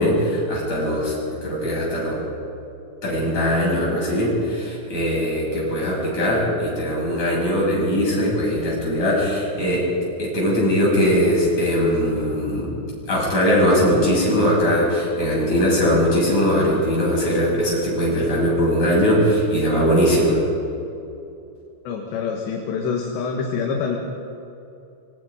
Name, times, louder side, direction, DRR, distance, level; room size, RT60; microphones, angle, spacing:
voice 1, 0.0-2.2 3.0-9.9 10.2-12.7 13.1-20.4, equal, 35° left, -4 dB, 8.5 m, -20 dB
voice 2, 21.9-24.0, left 5 dB, 65° left, 1 dB, 3.6 m, -26 dB
26.0 x 24.0 x 5.2 m, 2.7 s
omnidirectional pair, 5.9 m